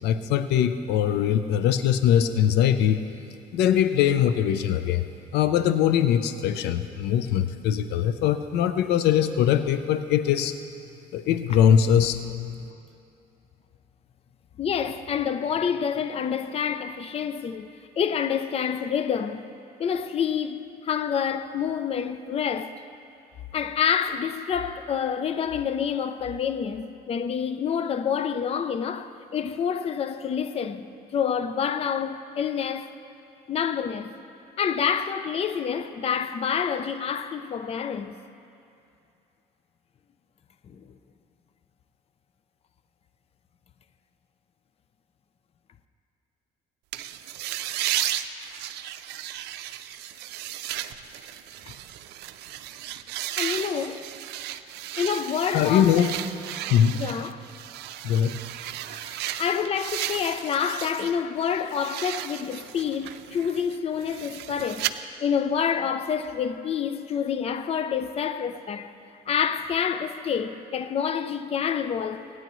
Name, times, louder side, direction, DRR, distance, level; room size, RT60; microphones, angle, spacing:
voice 1, 0.0-3.0 3.5-5.0 5.3-10.6 11.1-12.7 55.5-56.1 56.7-57.0 58.0-58.4, left 9 dB, 80° left, 0.6 m, -22 dB
voice 2, 14.6-17.7 18.0-19.4 19.8-22.8 23.5-30.9 31.1-32.9 33.5-34.1 34.6-38.1 40.7-40.8 53.4-54.1 55.0-56.1 57.0-57.4 58.9-64.9 65.2-68.9 69.3-72.2, left 7 dB, 35° left, 0.5 m, -28 dB
sound 1, 46.9-61.1 61.5-64.9, right 13 dB, 80° right, 0.5 m, -34 dB
23.5 x 9.5 x 3.1 m
cardioid pair, 110°, 17 cm